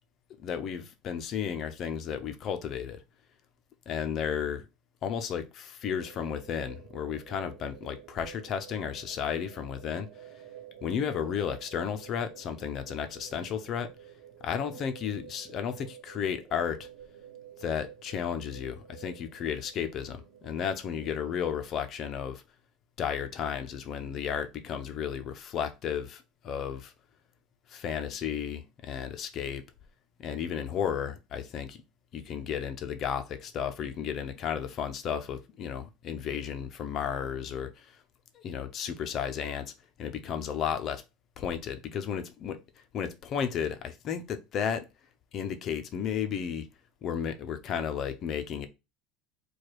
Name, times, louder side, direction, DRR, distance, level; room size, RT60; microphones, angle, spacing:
voice 1, 0.4-3.0 3.9-4.6 5.0-10.1 10.8-13.9 14.4-16.9 17.6-22.4 23.0-26.9 27.7-29.6 30.2-31.8 32.1-38.0 38.4-39.7 40.0-41.0 41.4-42.6 42.9-44.9 45.3-46.7 47.0-48.7, left 8 dB, 35° left, 0.5 m, -33 dB
sound 1, 5.8-21.4, right 10 dB, 65° right, 0.7 m, -50 dB
4.8 x 2.3 x 4.5 m
cardioid pair, 165°, 0 cm